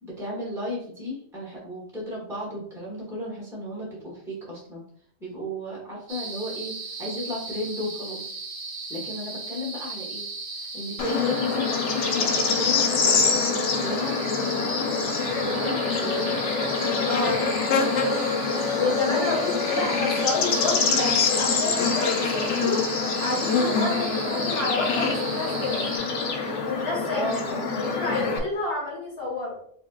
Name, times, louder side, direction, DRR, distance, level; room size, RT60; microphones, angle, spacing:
voice 1, 0.0-4.8 5.2-6.7 7.0-8.3 8.9-10.2 10.5-16.5 18.7-19.3 20.1-20.2 27.1-27.9, left 1 dB, 5° right, -7 dB, 1.2 m, -34 dB
sound 1, 6.1-26.0, right 3 dB, 50° right, 1.2 m, -37 dB
Bird / Insect, 11.0-28.4, left 4 dB, 80° left, 1.0 m, -25 dB
voice 2, 17.1-17.4 18.8-22.9 23.2-25.9 26.6-27.3 27.8-29.5, left 3 dB, 55° left, -7 dB, 2.0 m, -29 dB
5.2 x 2.8 x 2.3 m, 0.63 s
omnidirectional pair, 1.2 m